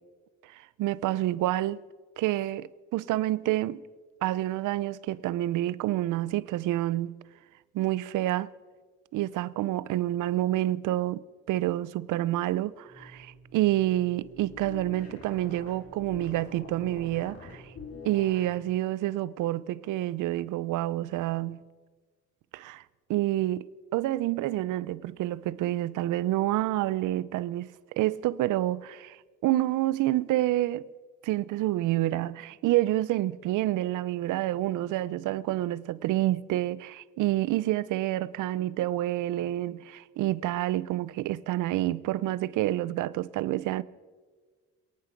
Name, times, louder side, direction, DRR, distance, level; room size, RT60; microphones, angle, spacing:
voice 1, 0.5-1.8 2.2-3.8 4.2-7.2 7.7-8.5 9.1-11.2 11.5-17.7 18.1-21.6 22.5-22.8 23.1-23.7 23.9-27.7 28.0-29.2 29.4-30.9 31.2-43.8, right 15 dB, 85° right, 0.6 m, -28 dB
sound 1, 12.9-18.6, left 3 dB, 50° left, 4.6 m, -46 dB
27.5 x 9.8 x 5.1 m
cardioid pair, 90°, 30 cm